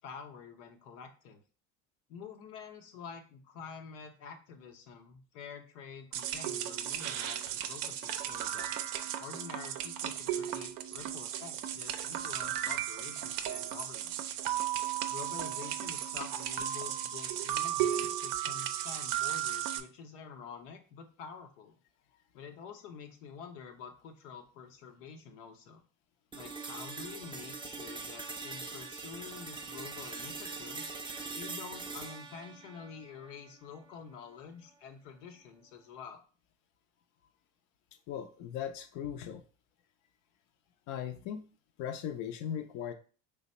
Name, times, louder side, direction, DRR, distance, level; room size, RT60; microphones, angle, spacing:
voice 1, 0.0-1.4 2.1-8.7 9.2-14.4 15.1-21.8 22.3-25.8 26.3-30.9 31.3-36.2, left 6 dB, 90° left, 5 dB, 0.8 m, -48 dB
sound 1, 6.1-19.8, right 11 dB, 65° right, 0.5 m, -35 dB
sound 2, 26.3-34.3, right 4 dB, 15° right, 0.5 m, -43 dB
voice 2, 38.1-39.4 40.9-41.4 41.8-42.9, left 9 dB, 55° left, 6 dB, 0.5 m, -38 dB
3.3 x 2.1 x 4.1 m, 0.38 s
supercardioid pair, 105°, 36 cm